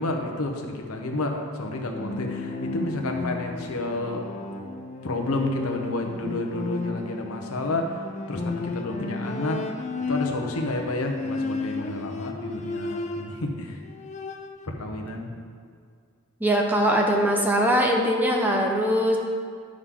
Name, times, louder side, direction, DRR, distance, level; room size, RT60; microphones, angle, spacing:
voice 1, 0.0-4.2 5.0-8.0 8.3-9.6 10.1-13.8 14.6-15.3, left 2 dB, 80° left, 2 dB, 1.0 m, -30 dB
Bowed string instrument, 1.8-13.5 13.9-14.7, left 3 dB, 30° left, 0.5 m, -33 dB
voice 2, 16.4-19.2, equal, 10° right, 0 dB, 0.8 m, -21 dB
9.9 x 6.4 x 3.8 m, 2.1 s
head